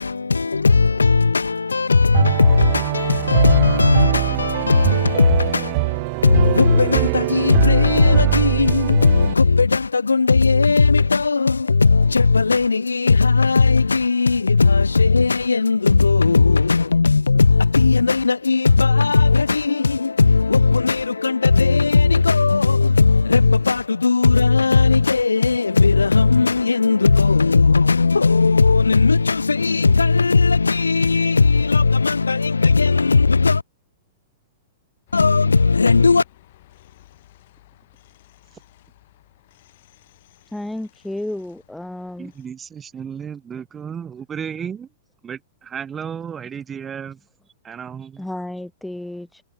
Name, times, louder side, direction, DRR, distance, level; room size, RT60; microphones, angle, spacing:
voice 1, 0.0-33.6 35.1-36.2, left 4 dB, 80° left, 0.3 m, -17 dB
sound 1, 2.1-9.3, right 31 dB, 45° right, 0.4 m, -22 dB
sound 2, 35.1-42.5, left 15 dB, 50° left, 3.7 m, -53 dB
voice 2, 40.5-42.3 48.2-49.4, left 1 dB, 5° left, 1.2 m, -32 dB
voice 3, 42.2-44.9 45.2-47.2 47.6-48.2, right 7 dB, 20° right, 1.3 m, -33 dB
figure-of-eight pair, 105°, 0 cm